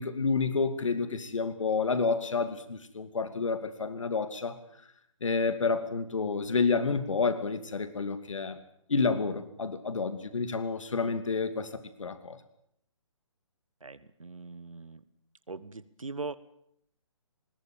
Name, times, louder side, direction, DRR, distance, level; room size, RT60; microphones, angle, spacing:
voice 1, 0.0-4.6 5.2-8.6 8.9-11.7 12.0-12.4, left 4 dB, 70° left, 11 dB, 2.7 m, -29 dB
voice 2, 13.8-15.0 15.5-16.4, right 3 dB, 85° right, 15 dB, 1.8 m, -40 dB
20.5 x 19.5 x 9.1 m, 0.71 s
figure-of-eight pair, 145°, 17 cm